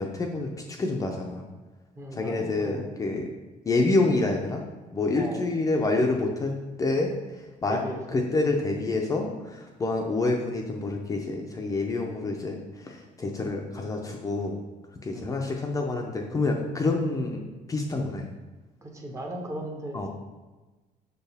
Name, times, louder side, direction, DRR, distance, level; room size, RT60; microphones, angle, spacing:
voice 1, 0.0-1.4 2.1-3.3 3.7-4.6 4.9-6.5 6.8-7.8 8.1-14.6 15.0-18.3 19.9-20.1, left 2 dB, 20° left, 1 dB, 0.5 m, -27 dB
voice 2, 1.9-3.2 5.2-5.5 7.7-8.2 15.1-15.4 18.8-20.1, right 1 dB, 20° right, 2 dB, 0.8 m, -37 dB
6.2 x 4.5 x 3.4 m, 1.2 s
cardioid pair, 150°, 15 cm